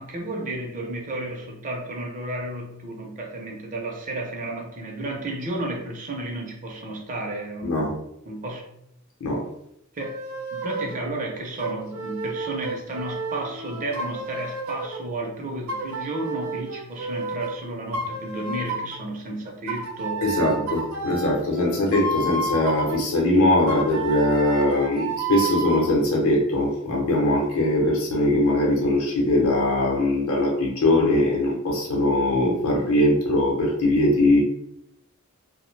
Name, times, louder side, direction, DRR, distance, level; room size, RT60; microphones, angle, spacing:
voice 1, 0.0-8.0 8.3-8.7 9.9-10.2 10.5-20.7, right 2 dB, 35° right, 0 dB, 0.5 m, -32 dB
voice 2, 7.6-7.9 9.2-9.4 20.2-34.4, left 1 dB, 70° left, -2 dB, 0.7 m, -21 dB
sound 1, 10.0-11.0 11.6-15.0 15.7-17.6 17.9-19.0 19.7-23.0 23.7-25.9, right 2 dB, 80° right, 0.6 m, -31 dB
2.6 x 2.0 x 3.1 m, 0.78 s
head